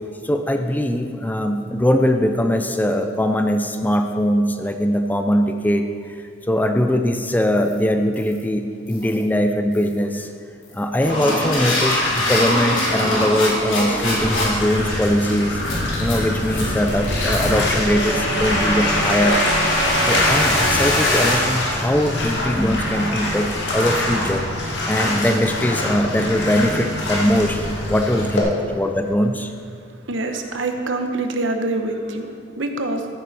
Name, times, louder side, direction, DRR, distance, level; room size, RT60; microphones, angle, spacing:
voice 1, 0.2-5.9 6.5-10.3 10.7-12.0 12.3-15.6 16.0-19.4 20.0-24.5 24.9-29.5, equal, 10° left, 6 dB, 0.5 m, -21 dB
sound 1, 7.6-7.8 8.1-8.4 8.9-9.2 9.7-10.0 10.6-21.3, left 1 dB, 85° left, 3.5 m, -23 dB
Bathtub (filling or washing), 14.1-28.4, left 1 dB, 60° left, 2.1 m, -25 dB
voice 2, 30.1-33.1, right 2 dB, 75° right, 5 dB, 1.0 m, -25 dB
13.5 x 9.6 x 4.2 m, 2.3 s
head